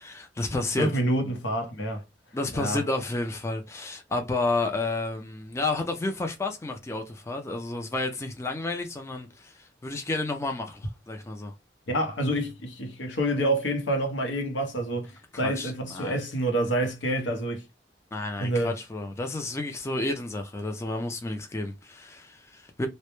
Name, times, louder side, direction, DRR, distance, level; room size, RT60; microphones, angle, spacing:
voice 1, 0.0-0.9 2.3-11.5 15.4-16.2 18.1-22.9, left 2 dB, 15° left, 0.3 m, -31 dB
voice 2, 0.8-2.0 2.5-2.8 11.9-17.7 18.4-18.8, right 1 dB, 80° left, 0.7 m, -27 dB
2.1 x 2.0 x 2.9 m
head